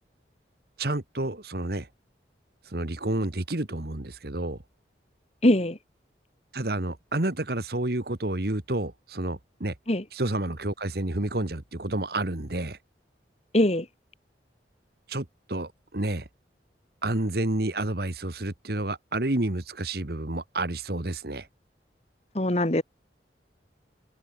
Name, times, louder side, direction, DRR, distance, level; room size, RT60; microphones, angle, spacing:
voice 1, 0.8-1.9 2.7-4.6 6.5-9.7 10.1-12.8 15.1-16.3 17.0-21.5, right 2 dB, 55° right, 1.7 m, -30 dB
voice 2, 5.4-5.8 9.9-10.0 13.5-13.9 22.4-22.8, left 1 dB, 35° left, 1.7 m, -22 dB
head